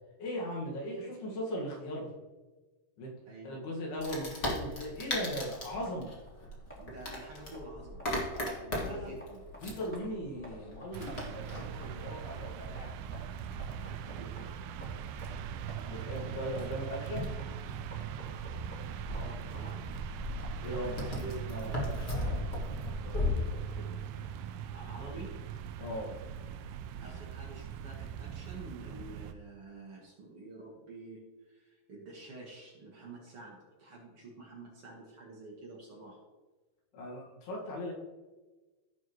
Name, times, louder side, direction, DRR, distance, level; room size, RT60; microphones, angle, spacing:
voice 1, 0.2-2.1 3.0-3.1 3.4-6.1 8.8-9.1 9.6-13.0 15.9-17.4 20.2-21.0 21.2-22.5 22.8-23.9 25.8-26.1 36.9-37.9, equal, 70° left, -3 dB, 3.7 m, -39 dB
voice 2, 3.3-3.6 6.8-8.1 8.5-9.4 13.8-14.4 16.6-16.7 19.1-19.8 20.7-21.3 24.7-25.3 27.0-36.2, right 2 dB, 50° right, -3 dB, 1.8 m, -49 dB
Wood, 4.0-23.3, left 1 dB, 50° left, 0.8 m, -39 dB
sound 1, 5.8-22.0, right 1 dB, 5° left, 1.4 m, -54 dB
sound 2, 10.9-29.3, right 8 dB, 80° right, 2.4 m, -41 dB
16.0 x 5.7 x 3.1 m, 1.2 s
omnidirectional pair, 4.7 m